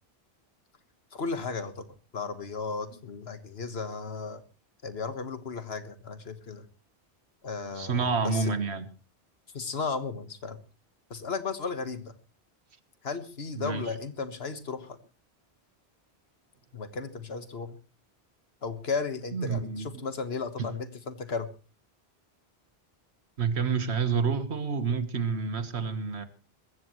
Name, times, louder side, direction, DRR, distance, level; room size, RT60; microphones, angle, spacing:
voice 1, 1.1-1.9 2.1-4.4 4.8-6.7 7.4-8.5 9.5-10.6 11.1-12.1 13.0-15.0 16.7-17.8 18.6-21.5, left 4 dB, 75° left, 1.6 m, -35 dB
voice 2, 7.8-8.9 13.6-13.8 19.3-20.0 20.6-20.7 23.4-26.3, right 5 dB, 85° right, 1.6 m, -28 dB
21.5 x 15.0 x 3.1 m
omnidirectional pair, 1.1 m